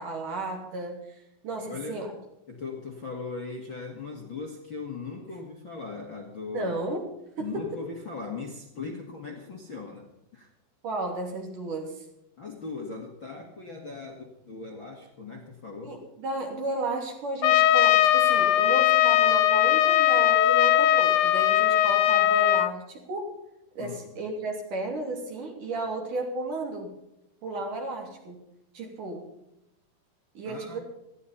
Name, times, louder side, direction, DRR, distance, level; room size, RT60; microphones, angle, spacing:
voice 1, 0.0-2.2 6.5-7.1 7.4-7.8 10.8-12.1 15.8-23.4 23.7-26.9 27.4-28.4 28.7-29.3 30.3-30.8, right 2 dB, 50° right, 2 dB, 4.3 m, -33 dB
voice 2, 1.6-2.1 2.5-6.7 7.4-10.5 12.4-16.0 23.8-24.0 30.4-30.8, left 4 dB, 40° left, 1 dB, 2.1 m, -39 dB
Trumpet, 17.4-22.7, left 12 dB, 80° left, 2.7 m, -20 dB
19.5 x 14.5 x 4.2 m, 0.87 s
omnidirectional pair, 4.8 m